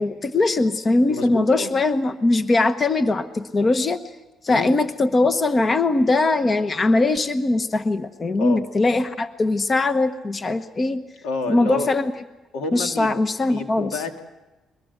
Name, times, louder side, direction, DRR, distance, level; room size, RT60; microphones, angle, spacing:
voice 1, 0.0-4.0 4.4-11.0 11.5-12.1 12.7-14.0, left 2 dB, 35° left, 10 dB, 1.0 m, -21 dB
voice 2, 1.1-1.7 4.5-4.7 8.4-8.6 11.2-11.9 12.5-13.1 13.5-14.2, left 3 dB, 90° left, 5 dB, 2.1 m, -29 dB
22.5 x 21.5 x 8.0 m, 1.1 s
cardioid pair, 85°, 0 cm